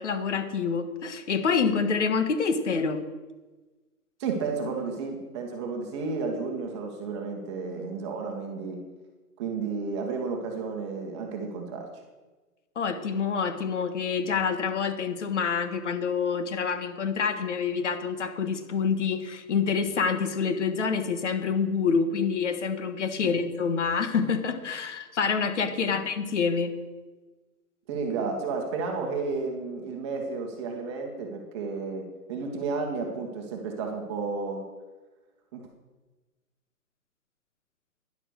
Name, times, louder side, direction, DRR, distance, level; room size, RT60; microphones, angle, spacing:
voice 1, 0.0-3.0 12.7-26.7, left 5 dB, 50° left, 9 dB, 1.6 m, -27 dB
voice 2, 4.2-8.8 9.4-12.0 23.2-23.3 25.8-25.9 27.9-34.7 35.5-35.7, right 4 dB, 20° right, 2 dB, 1.4 m, -32 dB
12.0 x 11.0 x 6.5 m, 1.2 s
hypercardioid pair, 165°, 47 cm